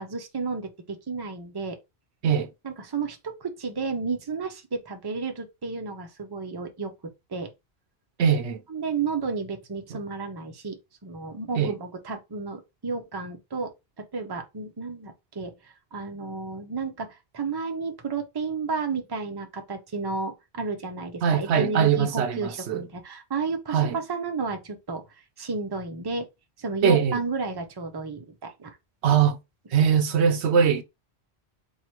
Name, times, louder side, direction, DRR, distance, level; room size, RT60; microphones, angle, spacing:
voice 1, 0.0-1.8 2.6-6.9 7.3-7.5 8.7-15.5 15.9-23.8 24.1-25.0 25.4-26.3 26.6-28.8, right 4 dB, 25° right, 0.6 m, -32 dB
voice 2, 8.2-8.6 9.9-10.0 11.6-11.7 21.2-22.8 23.7-24.0 26.8-27.2 29.0-29.4 29.7-30.8, right 7 dB, 90° right, 1.0 m, -21 dB
3.0 x 2.8 x 4.4 m
omnidirectional pair, 1.1 m